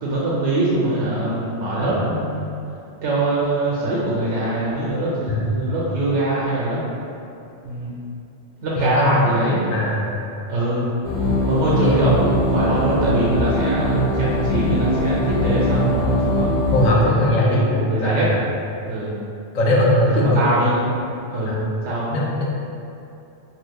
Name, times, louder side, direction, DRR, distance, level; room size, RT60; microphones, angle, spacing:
voice 1, 0.0-2.6 3.0-6.8 7.6-8.0 8.6-9.6 10.5-10.8 11.5-16.5 16.9-18.3 18.9-19.1 20.0-21.0 21.3-22.1, right 1 dB, 80° right, -7 dB, 0.9 m, -23 dB
voice 2, 8.8-9.3 9.7-10.2 11.8-12.1 16.7-18.4 19.5-20.5 21.5-21.6 22.1-22.4, left 1 dB, 55° left, -4 dB, 0.4 m, -20 dB
sound 1, 11.0-16.9, left 1 dB, 80° left, 1.2 m, -21 dB
2.7 x 2.3 x 3.4 m, 2.7 s
omnidirectional pair, 1.2 m